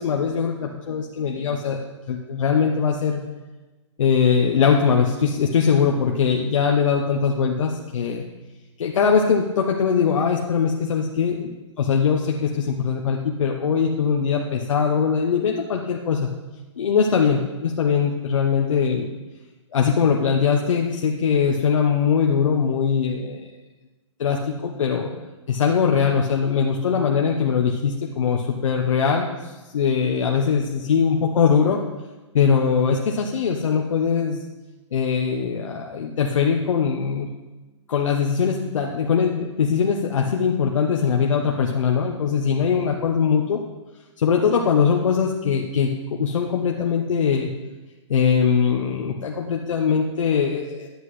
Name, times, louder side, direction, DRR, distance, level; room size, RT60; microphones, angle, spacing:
voice 1, 0.0-3.2 4.0-8.2 8.8-16.3 16.8-19.1 19.7-23.4 24.2-25.1 25.5-31.8 32.3-34.4 34.9-37.3 37.9-43.6 44.2-45.9 46.2-47.5 48.1-50.9, left 6 dB, 80° left, 1 dB, 0.9 m, -21 dB
11.5 x 8.1 x 3.2 m, 1.2 s
hypercardioid pair, 145°, 16 cm